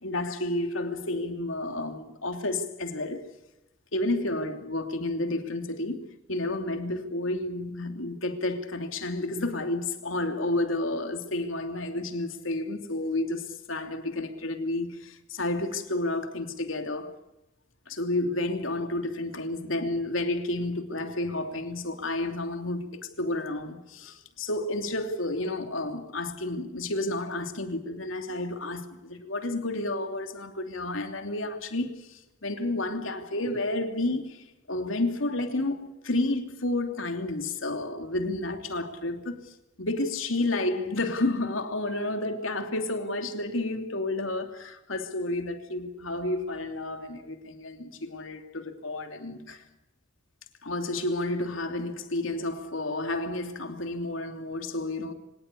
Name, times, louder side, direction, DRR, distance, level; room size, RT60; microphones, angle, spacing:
voice 1, 0.0-3.3 3.9-17.1 17.9-49.6 50.6-55.1, left 2 dB, 90° left, 3.0 m, -31 dB
25.5 x 18.5 x 8.5 m
head